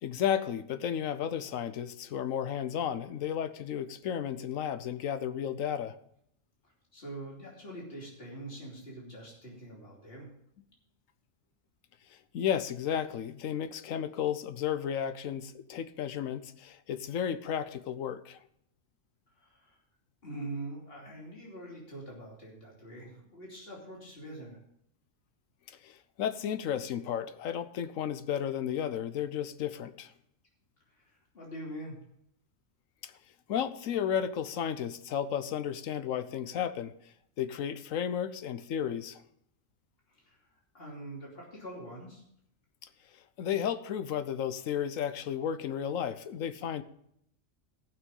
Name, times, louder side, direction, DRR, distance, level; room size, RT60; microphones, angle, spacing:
voice 1, 0.0-5.9 12.3-18.4 25.8-30.1 33.0-33.1 33.5-36.9 37.4-39.2 43.4-46.8, left 9 dB, 85° left, 12 dB, 1.1 m, -33 dB
voice 2, 6.9-10.3 19.4-19.8 20.2-24.6 30.9-32.0 40.1-40.4 40.7-42.2, right 1 dB, 45° left, -4 dB, 3.2 m, -44 dB
15.0 x 6.2 x 5.4 m, 0.72 s
omnidirectional pair, 1.3 m